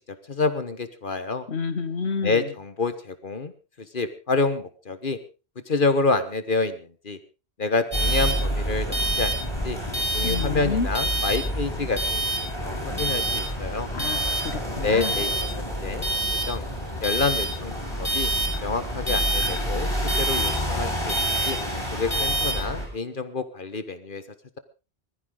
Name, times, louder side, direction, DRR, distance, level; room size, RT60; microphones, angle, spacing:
voice 1, 0.3-1.5 2.2-3.5 3.9-5.2 5.7-7.2 7.6-9.4 9.6-9.8 10.1-13.9 14.8-15.3 15.8-16.1 16.5-16.6 17.0-18.3 18.6-21.6 21.9-24.2, left 3 dB, 55° left, 11 dB, 1.5 m, -28 dB
voice 2, 1.5-2.5 10.2-10.9 13.9-14.2 14.4-15.2, left 5 dB, 80° left, 11 dB, 1.7 m, -29 dB
sound 1, 7.9-22.9, right 1 dB, 25° left, 7.8 m, -27 dB
20.5 x 14.0 x 3.9 m, 0.32 s
omnidirectional pair, 1.1 m